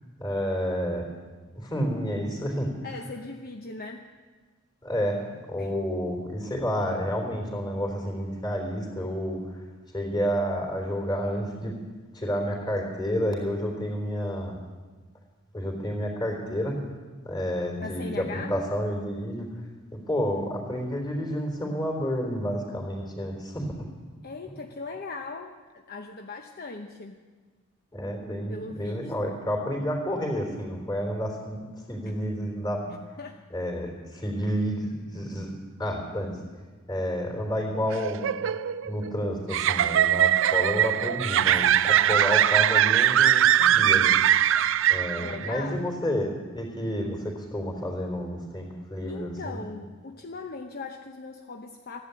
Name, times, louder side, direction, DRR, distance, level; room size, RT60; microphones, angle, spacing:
voice 1, 0.2-1.1 1.5-2.7 4.8-5.2 5.5-9.4 9.9-11.8 12.1-14.6 15.5-16.8 17.2-19.5 19.9-23.9 27.9-32.9 33.5-35.5 35.8-36.4 36.9-38.3 38.8-44.2 44.9-49.6, equal, 20° left, 1 dB, 3.7 m, -30 dB
voice 2, 2.8-4.1 5.6-5.7 17.8-18.5 24.2-27.2 28.5-29.4 33.2-33.4 41.2-41.9 45.2-45.9 49.1-52.0, left 3 dB, 50° left, 4 dB, 0.9 m, -39 dB
sound 1, 37.9-45.5, right 10 dB, 65° right, 0.4 m, -21 dB
15.5 x 11.0 x 8.3 m, 1.4 s
head